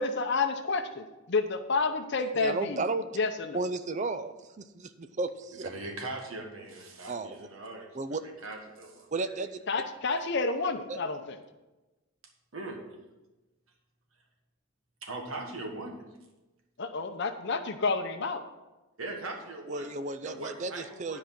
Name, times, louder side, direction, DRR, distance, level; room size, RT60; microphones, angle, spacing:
voice 1, 0.0-2.8 3.2-3.6 9.7-11.4 16.8-18.4, left 4 dB, 55° left, 7 dB, 0.7 m, -30 dB
voice 2, 2.3-3.1 3.5-5.6 7.1-7.5 7.9-8.2 9.1-9.6 10.9-11.0 19.7-21.2, right 3 dB, 35° right, 11 dB, 0.5 m, -33 dB
voice 3, 5.6-9.4 12.5-12.8 15.0-16.0 19.0-19.9 20.2-21.2, right 2 dB, 70° right, 2 dB, 1.5 m, -40 dB
10.5 x 4.9 x 5.9 m, 1.1 s
head